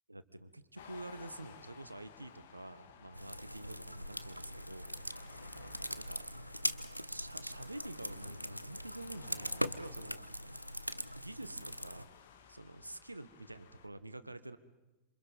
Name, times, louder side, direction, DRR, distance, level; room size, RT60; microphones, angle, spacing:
voice 1, 0.1-6.3 7.0-10.4 11.2-12.1 12.5-14.6, right 1 dB, 85° right, 14 dB, 1.2 m, -48 dB
sound 1, 0.8-13.9, left 7 dB, 60° left, 2.2 m, -57 dB
sound 2, 3.1-12.0, equal, 90° left, 0.7 m, -41 dB
27.0 x 27.0 x 5.4 m, 1.1 s
figure-of-eight pair, 90°, 0 cm